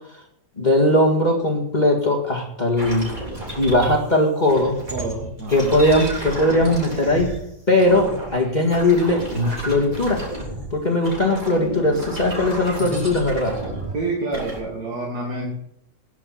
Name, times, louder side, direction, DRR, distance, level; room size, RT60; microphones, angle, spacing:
voice 1, 0.6-3.2 3.6-4.8 5.5-7.3 7.7-10.2 10.7-13.6, left 1 dB, 25° left, 0 dB, 2.0 m, -19 dB
sound 1, 2.8-4.1 4.5-7.4 7.8-10.7 11.0-14.0 14.3-14.6, right 1 dB, 25° right, 3.6 m, -32 dB
voice 2, 4.9-5.8 13.9-15.5, right 2 dB, 60° right, -1 dB, 2.7 m, -28 dB
19.0 x 6.6 x 5.8 m, 0.75 s
omnidirectional pair, 1.9 m